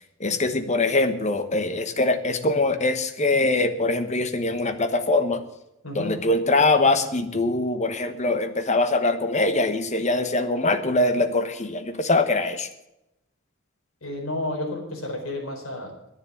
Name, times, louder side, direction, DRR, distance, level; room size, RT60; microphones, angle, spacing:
voice 1, 0.2-5.4 5.9-12.7, left 2 dB, 35° left, 8 dB, 1.2 m, -23 dB
voice 2, 5.8-6.2 14.0-15.9, left 1 dB, 75° left, 1 dB, 4.7 m, -31 dB
11.0 x 9.7 x 8.5 m, 0.87 s
head